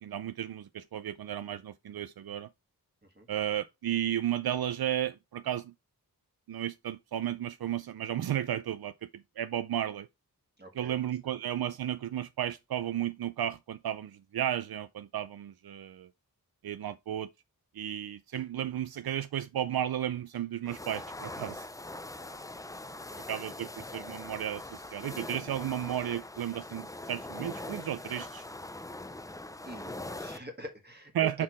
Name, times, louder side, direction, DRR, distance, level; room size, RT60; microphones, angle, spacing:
voice 1, 0.0-2.5 3.3-5.7 6.5-10.1 10.8-16.1 16.6-17.3 17.7-21.7 23.3-28.5 31.2-31.4, right 11 dB, 80° right, 0.5 m, -33 dB
voice 2, 10.6-11.0 11.3-11.4 22.2-22.4 29.6-31.4, equal, 30° right, 1.4 m, -45 dB
sound 1, 20.6-30.4, left 2 dB, 10° left, 0.4 m, -42 dB
5.6 x 4.4 x 4.7 m
wide cardioid pair, 85°, 36 cm